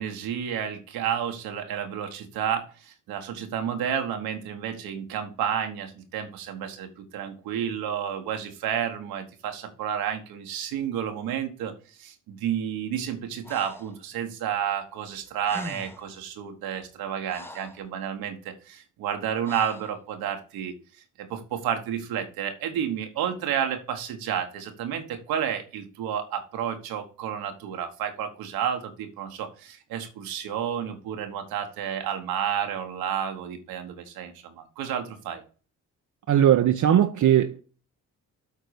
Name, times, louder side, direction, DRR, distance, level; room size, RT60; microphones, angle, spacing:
voice 1, 0.0-20.8 21.2-35.4, right 9 dB, 85° right, 1.4 m, -31 dB
Breathing, 13.4-14.0 15.1-15.2 15.4-16.1 16.8-17.8 19.4-20.0, left 1 dB, 5° left, 1.0 m, -41 dB
voice 2, 36.3-37.6, right 10 dB, 55° right, 0.7 m, -19 dB
8.1 x 3.9 x 6.5 m
supercardioid pair, 55°, 36 cm